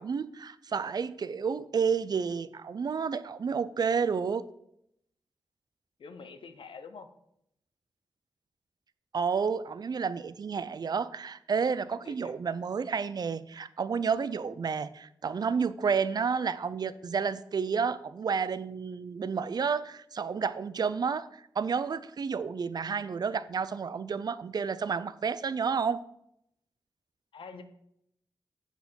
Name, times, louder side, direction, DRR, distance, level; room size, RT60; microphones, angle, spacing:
voice 1, 0.0-4.4 9.1-26.0, right 6 dB, 55° right, 15 dB, 0.3 m, -30 dB
voice 2, 6.0-7.1 12.0-12.3 22.8-23.1 27.3-27.6, left 5 dB, 90° left, 9 dB, 0.7 m, -46 dB
8.0 x 4.2 x 5.5 m, 0.76 s
wide cardioid pair, 150°, 8 cm